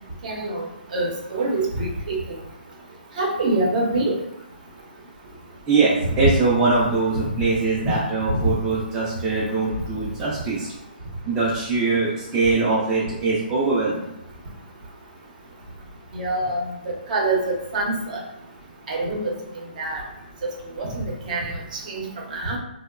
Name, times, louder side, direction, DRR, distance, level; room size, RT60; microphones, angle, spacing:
voice 1, 0.2-0.7 0.9-2.2 3.2-4.1 8.3-8.4 16.1-16.6 17.1-18.2 18.9-19.3 19.8-20.0 20.4-21.5 21.9-22.0 22.3-22.6, right 2 dB, 50° right, -1 dB, 0.7 m, -25 dB
voice 2, 5.7-10.7 11.2-14.1, right 3 dB, 15° right, -8 dB, 0.4 m, -22 dB
2.8 x 2.0 x 2.3 m, 0.85 s
hypercardioid pair, 155°, 5 cm